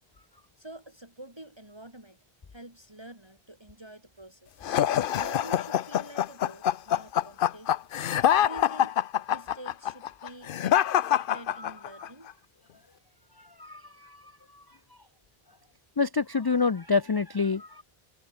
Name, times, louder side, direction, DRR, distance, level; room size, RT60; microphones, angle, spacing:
voice 1, 0.6-2.2 2.5-4.6 5.2-7.9 8.4-9.0 9.3-12.3, right 1 dB, 25° right, 3.6 m, -47 dB
sound 1, 4.6-12.1, left 10 dB, 65° left, 0.7 m, -25 dB
voice 2, 11.3-11.7 13.4-14.6 16.0-17.8, left 4 dB, 30° left, 0.5 m, -28 dB
omnidirectional pair, 1.0 m